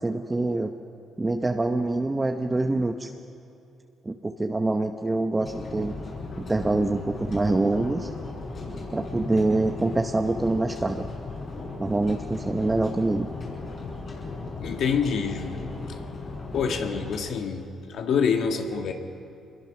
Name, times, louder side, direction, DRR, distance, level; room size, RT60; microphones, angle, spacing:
voice 1, 0.0-0.7 1.2-3.1 4.0-5.9 6.4-8.1 8.9-11.1 11.8-13.3, right 2 dB, 20° right, 1.0 m, -25 dB
sound 1, 5.4-17.2, left 3 dB, 55° left, 7.2 m, -36 dB
voice 2, 14.6-15.8 16.5-18.9, left 6 dB, 70° left, 1.8 m, -26 dB
25.0 x 22.0 x 6.1 m
cardioid pair, 90°, 0 cm